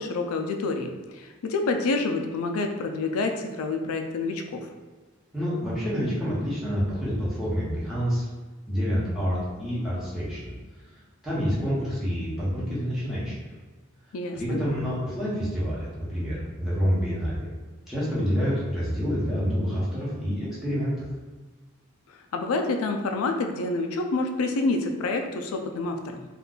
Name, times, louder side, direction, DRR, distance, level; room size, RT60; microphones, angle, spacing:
voice 1, 0.0-4.7 14.1-14.6 22.1-26.3, left 3 dB, 85° left, 5 dB, 0.4 m, -28 dB
voice 2, 5.3-8.2 8.7-10.5 11.2-13.4 14.4-17.5 17.9-20.9, equal, ahead, -10 dB, 0.9 m, -27 dB
2.5 x 2.3 x 3.7 m, 1.3 s
head